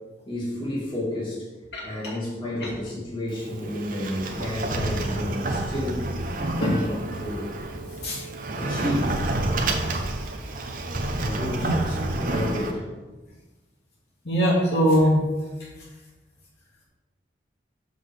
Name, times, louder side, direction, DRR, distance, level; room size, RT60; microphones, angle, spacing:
voice 1, 0.3-1.4 1.8-6.1 6.5-7.5 8.5-9.2 11.2-12.8, left 1 dB, 25° left, -6 dB, 2.3 m, -31 dB
Sliding door, 3.3-12.7, right 2 dB, 45° right, 0.8 m, -29 dB
voice 2, 14.2-15.2, equal, 65° left, -5 dB, 2.4 m, -21 dB
6.0 x 5.3 x 6.5 m, 1.2 s
head